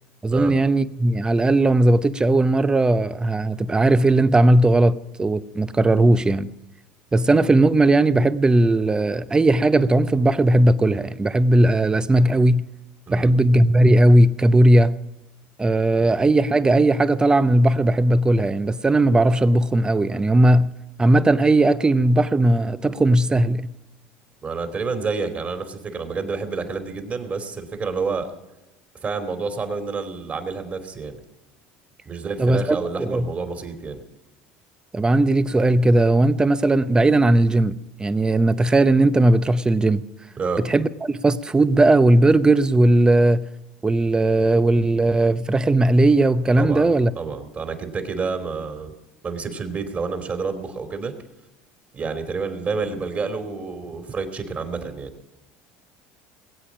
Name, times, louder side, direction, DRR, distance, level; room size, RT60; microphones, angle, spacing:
voice 1, 0.2-6.5 7.1-12.7 13.1-15.0 15.6-20.7 21.0-23.7 32.4-33.3 34.9-40.0 40.6-43.4 43.8-47.1, right 2 dB, 15° right, 0.8 m, -17 dB
voice 2, 24.4-28.3 29.0-31.2 32.0-34.0 40.4-40.6 46.6-46.9 47.1-48.9 49.2-51.1 51.9-55.1, right 4 dB, 35° right, 2.9 m, -29 dB
20.5 x 8.5 x 6.1 m
supercardioid pair, 90°, 5 cm